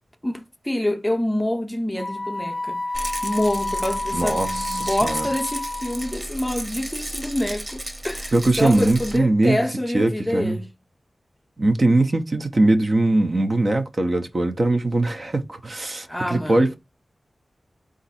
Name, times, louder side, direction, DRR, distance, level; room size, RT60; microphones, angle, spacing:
voice 1, 0.2-2.8 3.2-10.7 16.1-16.8, left 1 dB, 5° left, 0.6 m, -26 dB
Wind instrument woodwind instrument, 2.0-6.1, left 2 dB, 50° left, 0.5 m, -29 dB
Rattle, 2.9-9.2, right 1 dB, 30° right, 1.0 m, -33 dB
voice 2, 4.1-5.3 8.3-9.6 9.9-10.6 11.6-16.8, right 2 dB, 45° right, 0.6 m, -21 dB
4.0 x 2.5 x 4.1 m
wide cardioid pair, 90°, 0 cm